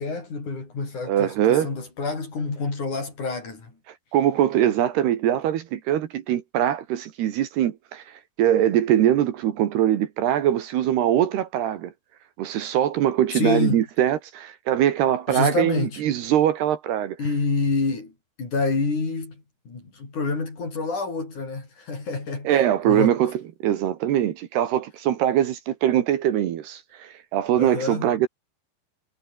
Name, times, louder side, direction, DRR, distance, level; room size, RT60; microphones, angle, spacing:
voice 1, 0.0-3.7 13.3-13.8 15.3-16.0 17.2-18.1 18.4-22.6 22.9-23.1 27.6-28.1, left 3 dB, 45° left, 7.8 m, -27 dB
voice 2, 1.0-1.7 4.1-11.9 12.4-17.2 22.5-23.3 23.6-28.3, right 11 dB, 70° right, 3.4 m, -22 dB
omnidirectional pair, 5.1 m